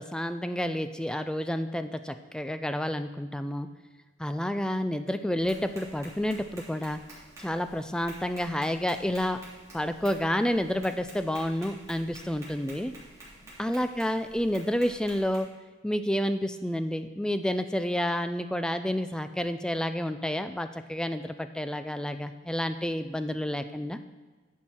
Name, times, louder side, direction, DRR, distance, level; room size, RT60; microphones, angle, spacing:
voice 1, 0.0-3.7 4.2-7.0 7.4-9.4 9.7-13.0 13.6-15.5 15.8-24.0, equal, 5° left, 10 dB, 0.3 m, -30 dB
Tap, 5.4-15.4, right 1 dB, 15° right, 3.2 m, -50 dB
10.5 x 7.3 x 4.4 m, 1.4 s
head